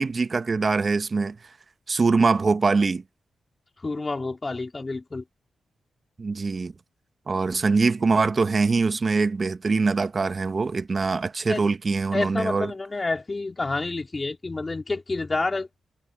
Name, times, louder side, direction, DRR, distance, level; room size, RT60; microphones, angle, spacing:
voice 1, 0.0-1.4 1.9-3.0 6.2-6.7 7.3-12.7, right 4 dB, 45° right, 1.1 m, -23 dB
voice 2, 3.8-5.2 11.5-11.6 12.1-15.7, left 3 dB, 30° left, 3.3 m, -28 dB
cardioid pair, 60°, 0 cm